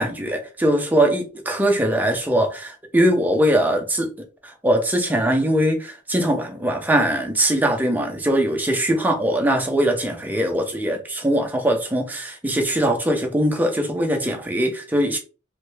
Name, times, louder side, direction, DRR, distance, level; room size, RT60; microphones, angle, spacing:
voice 1, 0.0-4.1 4.4-15.2, right 1 dB, 10° right, 0.5 m, -21 dB
3.2 x 2.2 x 3.1 m
head